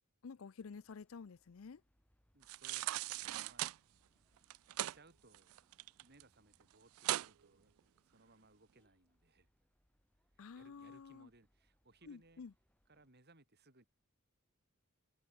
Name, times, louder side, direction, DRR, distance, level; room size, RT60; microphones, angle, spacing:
voice 1, 0.2-1.8 10.4-11.3 12.1-12.5, left 5 dB, 70° left, 0.5 m, -51 dB
sound 1, 0.6-13.1, equal, 5° left, 5.2 m, -79 dB
voice 2, 2.3-3.7 4.7-5.5 6.0-9.5 10.5-12.4 12.9-13.8, right 2 dB, 50° right, 4.7 m, -66 dB
sound 2, 2.4-3.8 4.4-5.0 5.3-6.2 6.5-6.6 7.0-7.3 7.8-7.9, right 15 dB, 70° right, 0.3 m, -39 dB
head